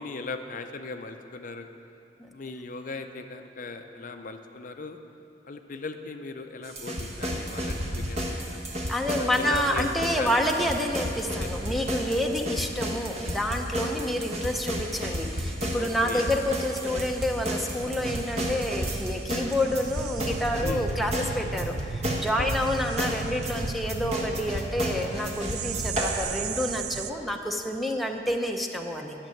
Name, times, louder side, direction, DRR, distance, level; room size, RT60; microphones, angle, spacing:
voice 1, 0.0-1.7 2.3-5.0 5.4-8.6 9.1-9.9 10.2-10.4 11.4-11.7 13.8-14.1 15.8-16.2 20.6-20.9 22.4-22.6, left 3 dB, 45° left, 6 dB, 0.5 m, -38 dB
sound 1, 6.6-26.2, equal, 35° right, 1.3 m, -32 dB
voice 2, 8.9-29.1, left 1 dB, ahead, 1 dB, 0.7 m, -28 dB
sound 2, 17.8-27.1, right 5 dB, 60° right, 0.4 m, -36 dB
12.0 x 6.7 x 9.2 m, 2.7 s
head